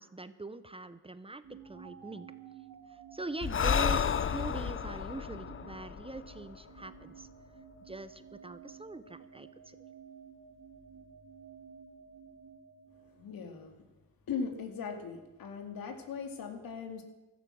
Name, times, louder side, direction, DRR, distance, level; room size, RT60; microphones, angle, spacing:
voice 1, 0.0-2.3 3.1-7.3 7.9-9.8, right 2 dB, 15° right, 13 dB, 0.8 m, -43 dB
sound 1, 1.4-13.5, right 7 dB, 80° right, 2.7 m, -53 dB
Breathing, 3.4-7.0, left 7 dB, 35° left, 0.6 m, -32 dB
voice 2, 13.1-13.8 14.3-17.0, left 6 dB, 85° left, 5 dB, 2.4 m, -39 dB
16.0 x 13.5 x 6.4 m, 1.1 s
cardioid pair, 105°, 34 cm